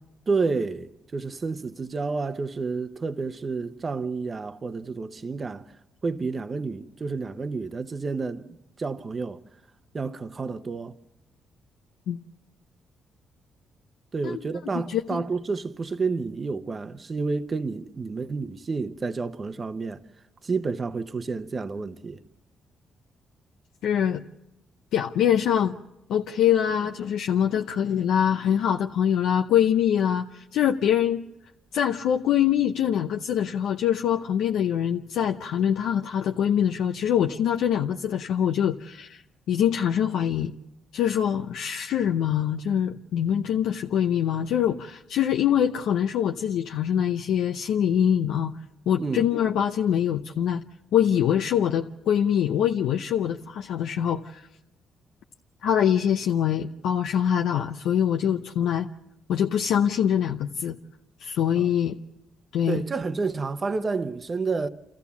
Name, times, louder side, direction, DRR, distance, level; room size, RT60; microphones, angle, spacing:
voice 1, 0.3-5.7 6.0-8.5 8.8-9.4 9.9-11.0 14.1-20.0 20.4-22.2 49.0-49.3 61.6-61.7 62.7-64.7, right 4 dB, 35° right, 0.9 m, -30 dB
voice 2, 14.7-15.2 23.8-24.2 24.9-25.8 26.1-31.2 31.7-39.2 39.5-40.5 40.9-48.5 48.9-50.6 50.9-54.5 55.6-58.9 59.3-60.8 61.2-62.0 62.5-62.8, left 9 dB, 80° left, 0.7 m, -24 dB
29.0 x 14.0 x 7.1 m
cardioid pair, 90°, 0 cm